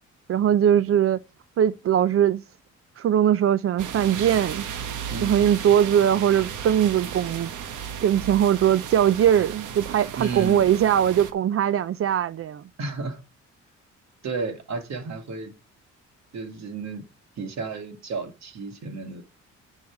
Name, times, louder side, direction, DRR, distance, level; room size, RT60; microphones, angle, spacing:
voice 1, 0.3-1.2 1.6-2.4 3.0-4.7 5.2-7.5 8.0-12.6, right 10 dB, 50° right, 0.5 m, -21 dB
sound 1, 3.8-11.3, right 8 dB, 80° right, 1.6 m, -35 dB
voice 2, 5.1-5.5 10.2-10.6 12.8-13.2 14.2-15.5 16.3-17.0 17.4-19.2, right 4 dB, 65° right, 2.4 m, -32 dB
10.5 x 6.4 x 4.7 m
cardioid pair, 90°, 30 cm